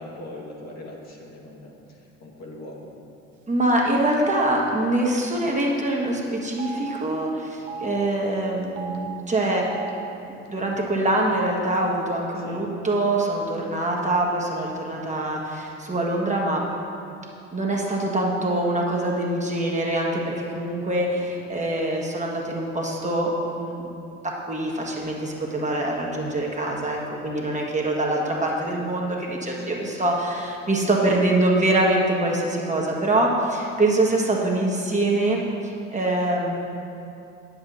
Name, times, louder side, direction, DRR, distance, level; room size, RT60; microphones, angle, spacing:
voice 1, 0.0-1.7 2.2-2.9 12.4-12.7 21.0-21.3 29.6-30.1, left 1 dB, 45° left, -3 dB, 1.8 m, -40 dB
voice 2, 3.5-9.7 10.5-16.6 17.5-23.9 24.2-36.5, right 1 dB, 20° right, -2 dB, 1.5 m, -24 dB
Telephone, 3.7-3.9 4.1-4.3 5.2-5.3 5.6-5.7 6.5-6.8 7.5-7.9 8.6-9.0 9.6-9.9 10.7-10.8 11.1-11.8, right 5 dB, 80° right, 0.9 m, -37 dB
9.5 x 7.6 x 4.0 m, 2.6 s
hypercardioid pair, 60°, 37 cm